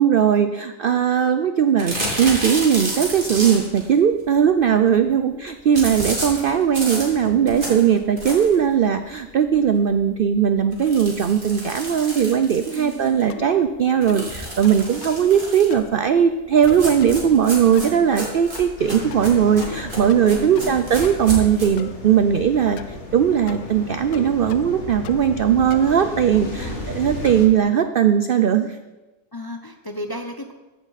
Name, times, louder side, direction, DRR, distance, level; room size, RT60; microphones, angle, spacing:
voice 1, 0.0-28.8, right 8 dB, 70° right, 9 dB, 0.5 m, -19 dB
sound 1, 1.8-3.9 5.7-8.7 9.1-9.2 9.5-9.6 9.9-10.0 10.7-13.2 14.0-15.8 16.6-21.7, right 1 dB, 35° right, 3.0 m, -31 dB
voice 2, 4.9-5.4 12.8-13.2 20.3-20.8 26.4-26.9 29.3-30.5, left 1 dB, 25° left, 5 dB, 0.5 m, -35 dB
sound 2, 13.3-13.7 14.1-14.3 14.6-15.3 15.7-16.0 16.7-17.2 17.8-18.1 18.6-18.9 19.1-19.8 20.1-20.7 21.0-21.9 22.8-23.0 23.5-23.7 24.1-24.8 25.0-25.4 25.7-27.5, left 12 dB, 80° left, 1.1 m, -39 dB
sound 3, 18.8-27.5, left 2 dB, 50° left, 2.3 m, -35 dB
14.5 x 11.0 x 4.1 m, 1.1 s
omnidirectional pair, 1.5 m